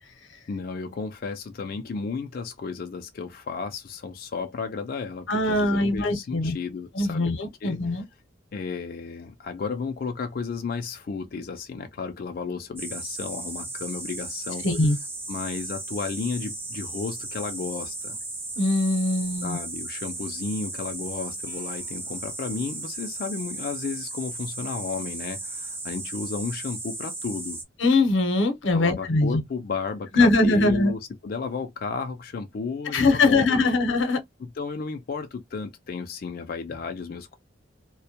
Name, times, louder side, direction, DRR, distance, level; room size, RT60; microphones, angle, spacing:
voice 1, 0.5-7.3 7.6-8.0 8.5-14.7 15.3-18.2 19.4-27.6 28.7-33.8 34.4-37.4, left 4 dB, 50° left, 0.4 m, -33 dB
voice 2, 5.3-6.6 6.9-8.0 14.6-15.0 18.6-19.6 27.8-29.4 30.2-30.9 32.9-34.2, left 2 dB, 90° left, 0.7 m, -22 dB
sound 1, 12.8-27.6, right 2 dB, 10° right, 0.6 m, -35 dB
2.1 x 2.1 x 2.7 m
head